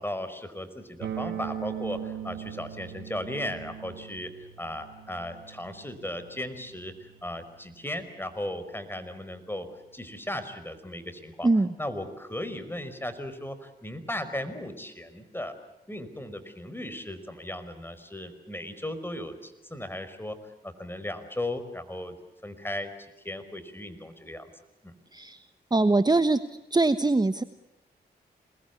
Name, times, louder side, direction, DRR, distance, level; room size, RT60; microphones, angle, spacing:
voice 1, 0.0-11.5 11.8-15.6 15.9-22.2 22.4-22.9 23.2-24.5 24.8-24.9, left 1 dB, 10° left, 10 dB, 5.2 m, -36 dB
sound 1, 1.0-10.9, right 9 dB, 90° right, 2.6 m, -42 dB
voice 2, 25.1-25.4 25.7-26.4 26.7-27.4, right 2 dB, 25° right, 11 dB, 1.2 m, -22 dB
27.5 x 20.5 x 8.5 m, 0.91 s
cardioid pair, 55°, 18 cm